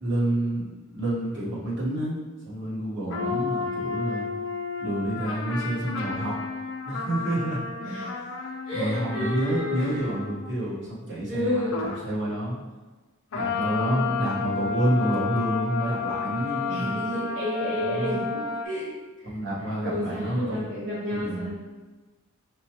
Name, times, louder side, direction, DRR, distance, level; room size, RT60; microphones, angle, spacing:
voice 1, 0.0-2.2 2.4-4.3 4.8-6.4 6.9-7.6 8.7-12.6 13.3-17.0 17.8-18.2 19.2-20.6 21.1-21.5, right 1 dB, 60° right, -8 dB, 1.4 m, -28 dB
sound 1, 3.1-10.6 11.7-12.1 13.3-18.7, left 5 dB, 75° left, 0.5 m, -32 dB
voice 2, 7.8-8.1 8.7-10.1 11.3-11.8 13.7-14.2 16.7-18.9 19.2-19.3 19.8-21.5, left 1 dB, 90° right, -8 dB, 1.0 m, -31 dB
5.2 x 2.1 x 3.0 m, 1.3 s
head